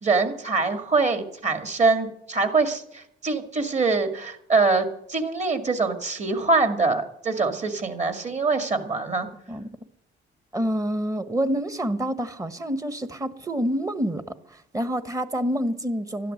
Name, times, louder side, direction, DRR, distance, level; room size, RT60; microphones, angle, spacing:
voice 1, 0.0-9.3, right 3 dB, 35° right, 8 dB, 2.2 m, -24 dB
voice 2, 10.5-14.2 14.5-16.3, equal, 15° right, 13 dB, 1.2 m, -27 dB
12.5 x 11.0 x 7.8 m, 0.74 s
cardioid pair, 90°, 20 cm